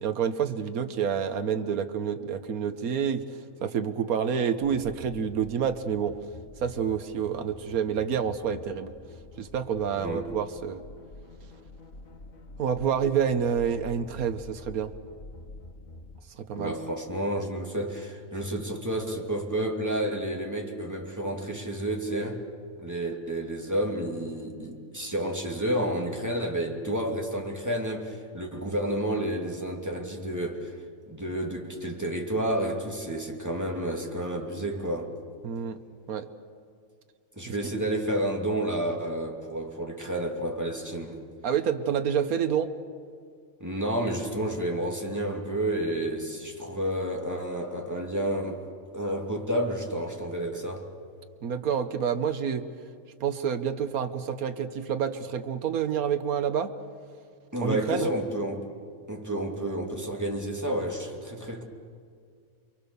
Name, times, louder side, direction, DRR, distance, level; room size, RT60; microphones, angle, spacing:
voice 1, 0.0-3.2 3.6-6.2 6.6-8.9 9.4-10.8 12.6-14.9 16.4-16.8 35.4-35.8 36.1-36.3 37.4-37.5 41.4-42.7 51.4-52.6 53.2-56.7 57.6-58.1, right 7 dB, 85° right, 8 dB, 1.5 m, -28 dB
sound 1, 4.6-16.2, left 2 dB, 70° left, 2.5 m, -47 dB
voice 2, 16.5-22.4 22.8-30.8 31.1-35.1 37.4-41.2 43.6-48.6 48.9-50.9 57.5-58.6 59.1-61.6, right 1 dB, 10° right, 1 dB, 2.6 m, -30 dB
29.5 x 23.0 x 7.0 m, 2.2 s
omnidirectional pair, 1.5 m